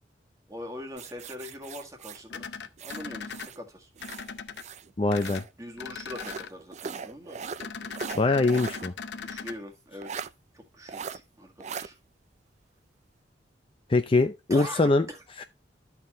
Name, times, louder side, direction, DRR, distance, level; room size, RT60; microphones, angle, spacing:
voice 1, 0.5-2.5 2.8-3.9 5.6-7.4 9.2-10.3 10.5-12.0 14.5-15.2, equal, 20° right, 1.7 m, -42 dB
sound 1, 1.0-3.6 4.0-5.5 6.1-8.9 9.2-9.3 10.0-10.3 10.9-11.2 11.6-11.9, right 6 dB, 40° right, 0.4 m, -39 dB
sound 2, 2.3-3.5 4.0-4.6 5.1-5.4 5.8-6.5 7.6-9.5, left 6 dB, 70° left, 0.6 m, -39 dB
voice 2, 5.0-5.4 8.1-8.9 13.9-15.1, left 3 dB, 30° left, 0.5 m, -23 dB
13.0 x 4.4 x 3.0 m
head